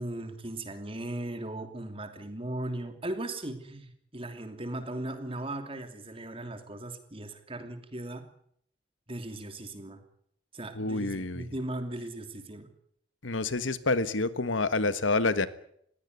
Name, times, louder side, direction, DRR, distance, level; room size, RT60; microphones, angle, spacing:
voice 1, 0.0-8.2 9.1-10.0 10.5-12.7, right 1 dB, 30° right, 8 dB, 2.9 m, -38 dB
voice 2, 10.7-11.5 13.2-15.5, left 3 dB, 85° left, 14 dB, 1.4 m, -28 dB
20.5 x 16.5 x 9.5 m, 0.69 s
head